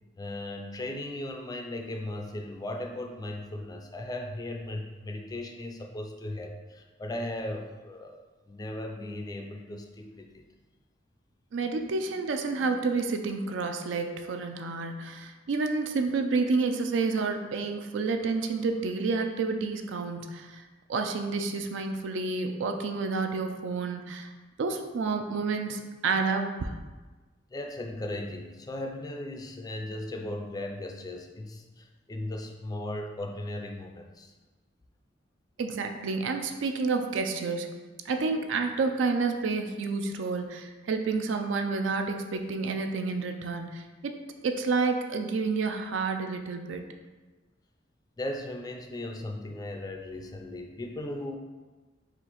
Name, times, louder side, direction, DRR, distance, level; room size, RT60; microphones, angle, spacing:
voice 1, 0.2-8.2 8.5-10.5 27.5-34.3 48.2-51.4, left 1 dB, 20° left, 3 dB, 0.3 m, -37 dB
voice 2, 11.5-20.6 20.9-24.3 24.6-26.7 35.6-37.8 38.1-46.8, right 4 dB, 75° right, 5 dB, 0.4 m, -29 dB
4.3 x 2.4 x 3.9 m, 1.3 s
head